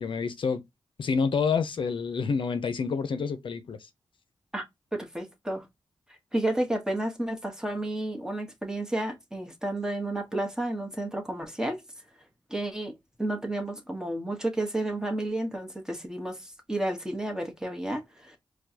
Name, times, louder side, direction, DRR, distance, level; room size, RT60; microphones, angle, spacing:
voice 1, 0.0-0.6 1.0-3.8, left 5 dB, 70° left, 0.6 m, -28 dB
voice 2, 4.9-5.7 6.3-11.8 12.5-12.9 13.2-18.4, right 1 dB, 5° right, 1.2 m, -31 dB
4.4 x 2.3 x 2.7 m
cardioid pair, 65°, 9 cm